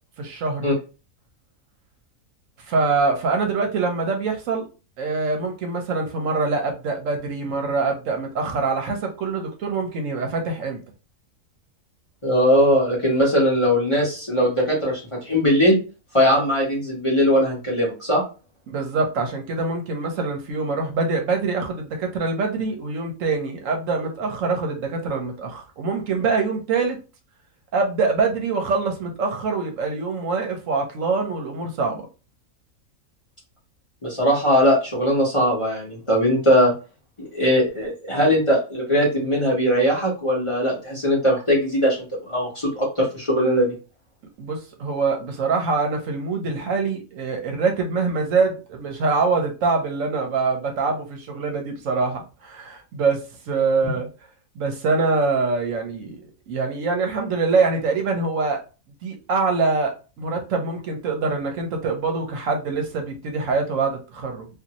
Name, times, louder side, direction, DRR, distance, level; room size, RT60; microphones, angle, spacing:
voice 1, 0.2-0.7 2.7-4.7 5.0-10.8 18.7-27.0 27.7-32.1 44.4-54.1 54.6-58.6 59.0-64.5, right 4 dB, 70° right, 1.0 m, -24 dB
voice 2, 12.2-15.8 16.1-18.2 34.0-36.7 37.2-42.0 42.3-43.7, equal, 25° left, 0.9 m, -20 dB
2.6 x 2.5 x 2.8 m
omnidirectional pair, 1.5 m